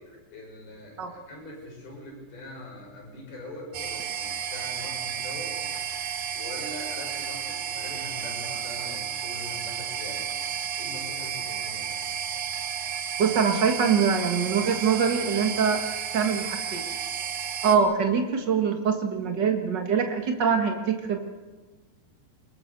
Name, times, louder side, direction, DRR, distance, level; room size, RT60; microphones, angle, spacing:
voice 1, 0.0-5.5 6.3-10.3 10.8-12.1, left 1 dB, 65° left, 0 dB, 7.9 m, -42 dB
sound 1, 3.7-17.8, right 8 dB, 65° right, 3.1 m, -32 dB
voice 2, 13.2-15.8 16.1-16.9 17.6-21.3, right 6 dB, 80° right, 4 dB, 0.9 m, -24 dB
24.0 x 22.0 x 6.7 m, 1.3 s
omnidirectional pair, 4.8 m